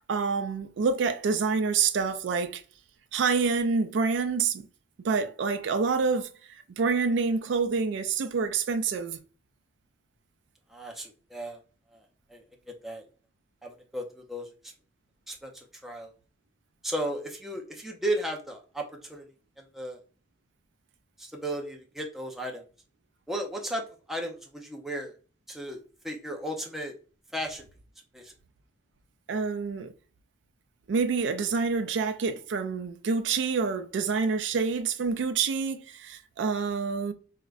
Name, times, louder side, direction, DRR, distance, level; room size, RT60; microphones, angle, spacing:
voice 1, 0.1-2.6 3.1-4.7 5.0-6.3 6.7-9.2 29.3-29.9 30.9-37.1, right 5 dB, 70° right, 0.4 m, -27 dB
voice 2, 10.7-11.6 11.9-12.0 12.3-13.1 13.6-14.5 15.3-16.1 16.8-19.2 19.6-20.0 21.2-22.6 23.3-23.8 24.1-25.1 25.5-26.9 27.3-27.7 28.1-28.3, right 1 dB, ahead, 0.5 m, -35 dB
4.7 x 2.1 x 2.3 m
head